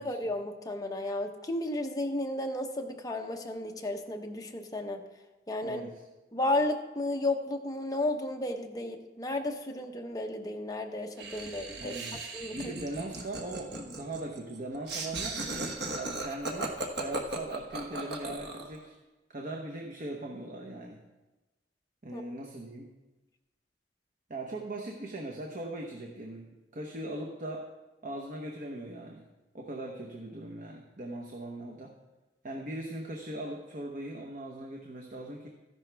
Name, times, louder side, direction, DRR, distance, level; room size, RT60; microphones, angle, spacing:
voice 1, 0.0-5.0 5.5-5.8 6.3-12.0 12.3-12.7 22.1-22.2, left 1 dB, 20° left, 3 dB, 1.0 m, -33 dB
voice 2, 5.6-6.1 11.3-11.5 11.7-12.2 12.5-15.4 15.9-18.9 19.3-21.0 22.0-22.9 24.3-26.4 26.7-27.7 28.0-29.2 29.5-31.9 32.4-35.5, right 1 dB, 45° right, 0 dB, 1.0 m, -40 dB
Laughter, 11.2-18.8, right 2 dB, 65° right, 1.2 m, -37 dB
13.5 x 10.5 x 3.4 m, 1.1 s
head